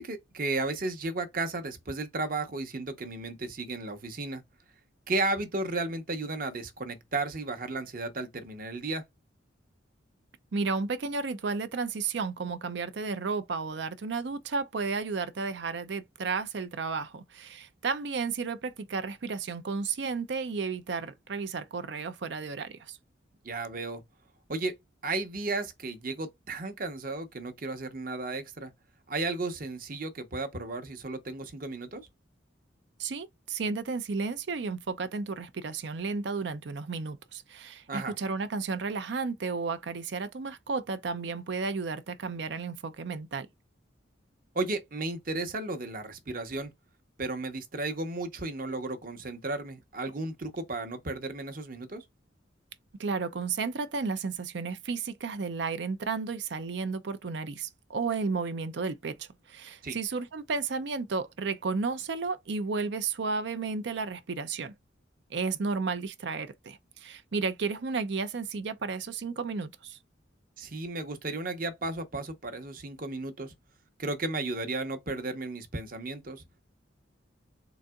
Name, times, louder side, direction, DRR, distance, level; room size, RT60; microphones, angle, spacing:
voice 1, 0.0-4.4 5.1-9.0 23.4-24.0 24.5-24.7 25.0-28.7 29.1-32.0 37.9-38.2 44.5-46.7 47.2-52.0 59.8-60.0 70.6-73.5 74.0-76.7, right 2 dB, 45° right, 0.8 m, -34 dB
voice 2, 10.5-23.0 33.0-43.5 53.0-64.7 65.3-70.0, right 4 dB, 65° right, 0.5 m, -33 dB
3.9 x 3.6 x 2.3 m
head